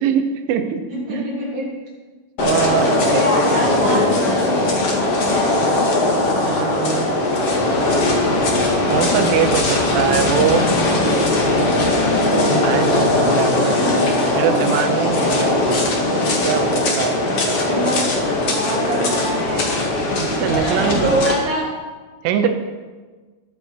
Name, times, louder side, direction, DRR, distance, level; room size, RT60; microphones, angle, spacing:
voice 1, 0.0-0.8 1.1-1.3 2.4-3.3 6.5-7.1 8.9-10.7 12.6-13.8 14.3-15.5 16.4-17.6 20.1-21.1 22.2-22.5, right 8 dB, 75° right, 6 dB, 3.2 m, -22 dB
voice 2, 0.9-1.7 3.0-5.3 13.6-14.4 17.6-18.1 18.4-20.0 20.6-21.7, right 1 dB, 35° right, -5 dB, 4.1 m, -25 dB
sound 1, 2.4-21.3, left 2 dB, 55° left, 1.7 m, -19 dB
20.5 x 8.2 x 4.6 m, 1.3 s
omnidirectional pair, 6.0 m